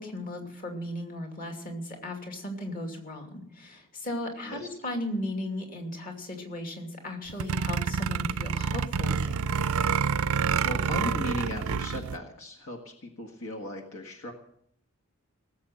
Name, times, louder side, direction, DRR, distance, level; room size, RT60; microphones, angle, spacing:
voice 1, 0.0-9.5, left 1 dB, 40° left, 2 dB, 2.7 m, -36 dB
sound 1, 7.3-12.2, right 6 dB, 75° right, 0.5 m, -28 dB
voice 2, 10.6-14.3, left 1 dB, 70° left, 3 dB, 1.7 m, -37 dB
18.5 x 7.7 x 7.9 m, 0.69 s
head